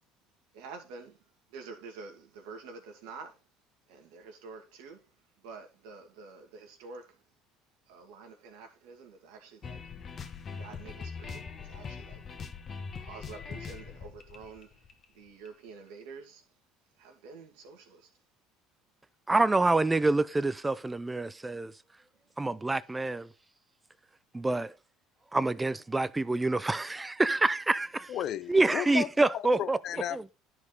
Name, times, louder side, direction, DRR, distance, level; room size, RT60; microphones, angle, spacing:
voice 1, 0.5-3.4 3.9-7.2 7.9-10.0 10.5-12.3 13.0-16.5 17.0-18.2, right 4 dB, 80° right, 1.9 m, -48 dB
sound 1, 9.6-15.5, left 5 dB, 40° left, 1.3 m, -42 dB
voice 2, 19.3-21.7 22.4-23.3 24.3-24.7 25.3-28.1 28.5-29.8 30.1-30.2, right 2 dB, 15° right, 0.5 m, -27 dB
voice 3, 28.1-29.1 29.3-30.3, left 11 dB, 55° left, 0.5 m, -34 dB
11.0 x 5.0 x 3.9 m
supercardioid pair, 85°, 0 cm